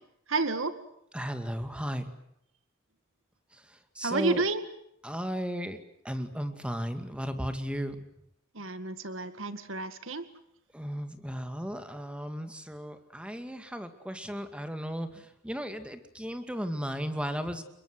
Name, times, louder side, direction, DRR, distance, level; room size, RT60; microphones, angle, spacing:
voice 1, 0.3-0.8 4.0-4.6 8.5-10.3, right 3 dB, 70° right, 11 dB, 2.1 m, -30 dB
voice 2, 1.1-2.1 3.5-4.4 5.0-8.0 10.7-17.6, equal, 5° right, 8 dB, 2.3 m, -35 dB
29.5 x 22.5 x 8.0 m, 0.75 s
head